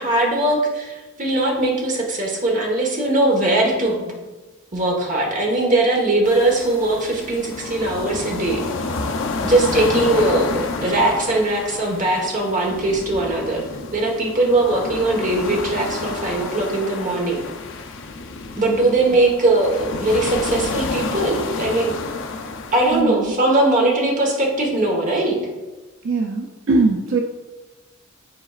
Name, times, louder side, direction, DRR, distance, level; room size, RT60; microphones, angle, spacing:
voice 1, 0.0-4.1 4.7-8.6 9.4-13.6 13.9-17.4 18.6-22.0 22.7-25.4, right 2 dB, 40° right, -1 dB, 1.3 m, -20 dB
sound 1, 6.2-23.0, left 3 dB, 60° left, 0.6 m, -29 dB
voice 2, 22.9-23.3 26.0-27.2, right 3 dB, 70° right, 2 dB, 0.5 m, -20 dB
9.7 x 4.0 x 2.4 m, 1.2 s
head